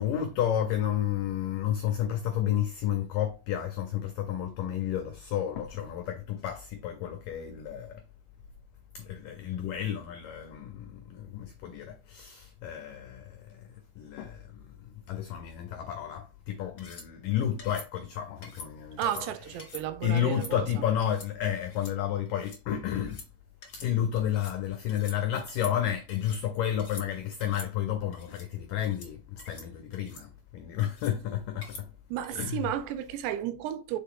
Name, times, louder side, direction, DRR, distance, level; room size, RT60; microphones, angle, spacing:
voice 1, 0.0-8.0 9.0-13.7 14.0-19.0 20.0-23.2 23.7-31.9 32.4-32.7, left 10 dB, 85° left, 1.9 m, -31 dB
sound 1, 16.8-17.1 17.6-17.9 18.4-18.7 19.0-19.2 19.6-19.8 20.2-20.5 21.0-21.3 21.7-21.9 22.2-22.6 22.9-23.3 23.6-23.9 24.1-24.6 24.9-25.2 25.5-26.4 26.8-27.1 27.4-27.7 28.1-28.5 28.8-29.1 29.4-29.7 29.9-30.2 30.8-31.1 31.6-31.8 32.2-32.5, left 3 dB, 45° left, 1.2 m, -46 dB
voice 2, 19.0-20.7 32.1-34.0, right 11 dB, 85° right, 2.8 m, -33 dB
6.7 x 4.3 x 3.7 m
omnidirectional pair, 4.8 m